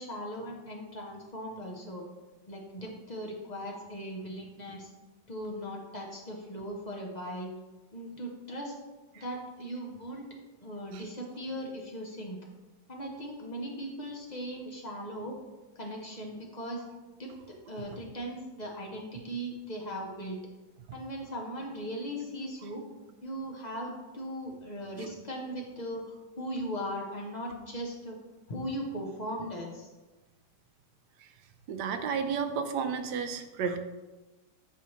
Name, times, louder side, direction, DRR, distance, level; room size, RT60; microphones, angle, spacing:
voice 1, 0.0-2.1 2.5-4.9 5.3-7.5 7.9-8.8 9.2-10.3 10.6-12.4 12.9-15.4 15.8-16.9 17.2-20.4 20.9-22.9 23.2-28.2 28.5-29.9, equal, 40° left, -1 dB, 0.6 m, -38 dB
voice 2, 31.7-33.8, right 6 dB, 70° right, 8 dB, 1.2 m, -32 dB
9.1 x 4.3 x 3.1 m, 1.2 s
omnidirectional pair, 1.9 m